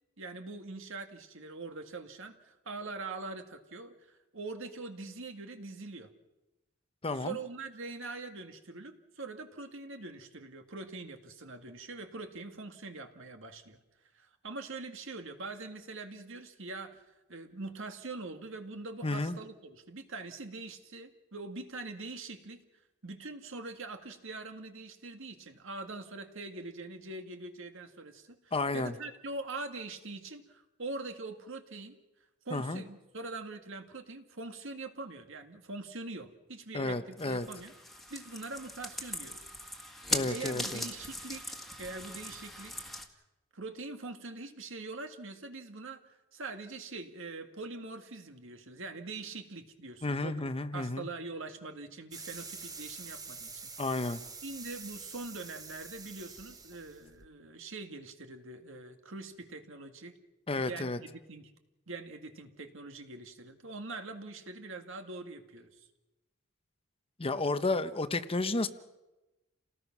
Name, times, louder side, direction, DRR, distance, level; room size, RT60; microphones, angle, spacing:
voice 1, 0.2-6.1 7.1-13.8 14.1-17.0 17.3-22.6 23.0-32.0 32.5-39.5 40.2-42.8 43.5-50.4 50.7-53.7 54.4-60.2 60.6-61.5 61.9-65.8, right 3 dB, 65° right, 6 dB, 2.1 m, -43 dB
voice 2, 7.0-7.4 19.0-19.4 28.5-28.9 32.5-32.8 36.7-37.5 40.1-40.9 50.0-51.1 53.8-54.2 60.5-61.0 67.2-68.7, left 2 dB, 25° left, 11 dB, 0.9 m, -32 dB
sound 1, 37.2-43.0, left 1 dB, ahead, 1.8 m, -39 dB
sound 2, 52.1-57.2, right 4 dB, 20° right, 1.3 m, -46 dB
29.0 x 18.5 x 6.1 m, 1.0 s
head